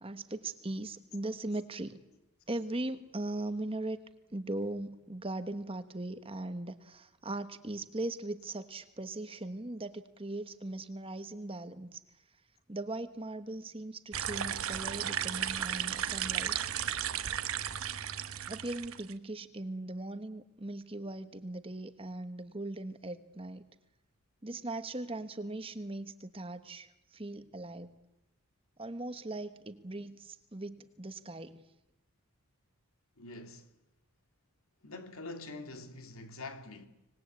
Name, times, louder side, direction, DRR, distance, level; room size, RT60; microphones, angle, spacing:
voice 1, 0.0-2.0 2.5-4.0 4.3-12.0 12.7-16.5 18.5-23.6 24.4-27.9 28.8-31.6, right 2 dB, 25° right, 1.1 m, -39 dB
sound 1, 14.1-19.1, right 9 dB, 70° right, 1.1 m, -34 dB
voice 2, 33.2-33.7 34.8-36.9, left 2 dB, 75° left, 2.4 m, -45 dB
25.5 x 20.0 x 8.4 m
head